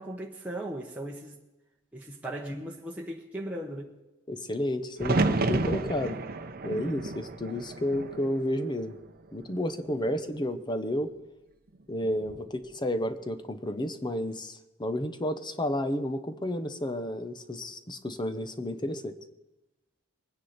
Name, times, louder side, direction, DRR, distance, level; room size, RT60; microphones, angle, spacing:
voice 1, 0.0-1.4 1.9-3.9, right 1 dB, 5° right, 1.2 m, -37 dB
voice 2, 4.3-6.2 6.6-9.0 9.3-11.1 11.9-19.2, left 1 dB, 20° left, 0.9 m, -31 dB
sound 1, 5.0-9.0 9.4-10.2 12.0-12.5, right 2 dB, 45° right, 0.8 m, -31 dB
23.0 x 9.8 x 4.3 m
head